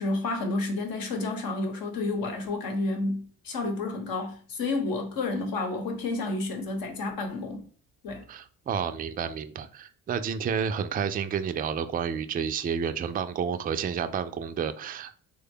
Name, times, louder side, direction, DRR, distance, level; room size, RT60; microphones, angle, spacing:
voice 1, 0.0-7.7 8.0-8.2, left 2 dB, 65° left, 1.0 m, -30 dB
voice 2, 8.3-15.1, right 7 dB, 25° right, 0.3 m, -30 dB
3.3 x 2.2 x 3.5 m
supercardioid pair, 55°, 37 cm